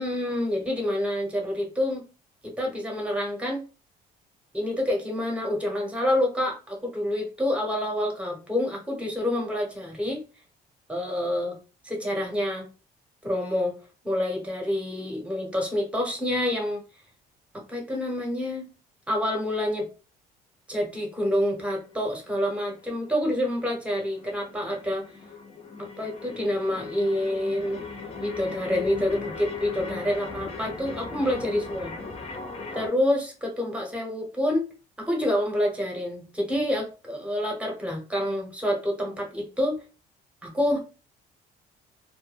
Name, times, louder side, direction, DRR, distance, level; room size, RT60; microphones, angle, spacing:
voice 1, 0.0-2.0 2.4-3.6 4.5-10.2 10.9-11.6 11.8-12.7 13.2-13.7 14.0-16.8 17.7-18.6 19.1-19.9 20.7-25.0 25.8-27.8 28.2-32.0 32.7-34.7 35.0-39.8 40.4-40.8, left 1 dB, 5° right, 0 dB, 0.9 m, -27 dB
sound 1, 21.6-32.9, left 4 dB, 35° left, 0.7 m, -39 dB
2.2 x 2.2 x 3.1 m, 0.33 s
cardioid pair, 110°, 17 cm